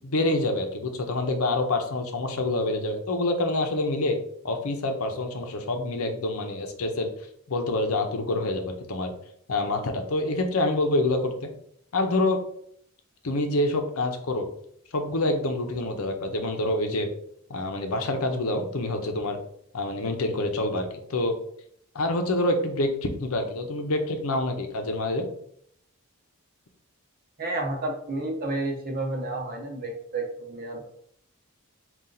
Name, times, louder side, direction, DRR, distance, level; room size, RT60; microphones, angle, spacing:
voice 1, 0.0-4.2 4.4-7.1 7.5-9.1 9.5-11.3 11.9-12.4 13.2-14.5 14.9-17.1 17.5-19.4 19.7-21.3 21.9-25.3, left 2 dB, 70° left, 5 dB, 0.7 m, -26 dB
voice 2, 27.4-30.9, right 2 dB, 40° right, 2 dB, 0.8 m, -31 dB
4.2 x 2.4 x 3.8 m, 0.66 s
head